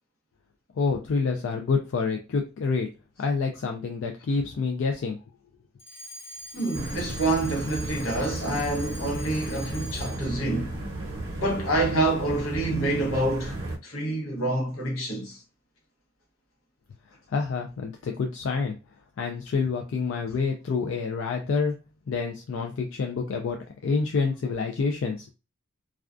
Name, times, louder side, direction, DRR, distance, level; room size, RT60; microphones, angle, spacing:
voice 1, 0.8-2.9 3.2-5.2 17.3-18.8 19.2-21.8 22.1-25.3, left 4 dB, 65° left, 0.3 m, -27 dB
Alarm, 5.8-10.4, equal, 30° left, 1.0 m, -43 dB
voice 2, 6.5-10.8 11.4-13.6 13.8-15.4, right 2 dB, 85° left, 0.9 m, -27 dB
sound 1, 6.7-13.8, right 2 dB, 75° right, 0.7 m, -34 dB
2.3 x 2.2 x 2.4 m
head